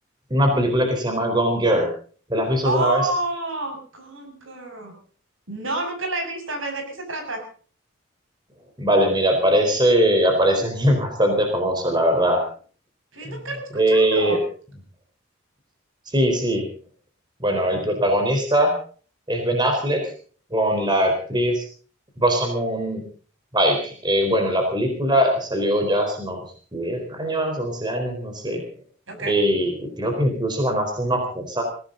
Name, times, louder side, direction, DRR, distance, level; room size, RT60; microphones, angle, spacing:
voice 1, 0.3-1.9 2.3-3.0 8.8-12.4 13.2-13.3 13.7-14.4 16.1-16.6 17.4-18.7 19.3-20.1 20.5-21.6 22.2-23.0 23.5-26.4 26.7-28.6 29.2-31.6, equal, 20° right, 4 dB, 4.2 m, -21 dB
voice 2, 2.6-4.9 5.5-7.4 13.1-14.4 29.1-29.3, right 2 dB, 70° right, 5 dB, 6.6 m, -29 dB
21.5 x 16.5 x 3.9 m, 0.42 s
head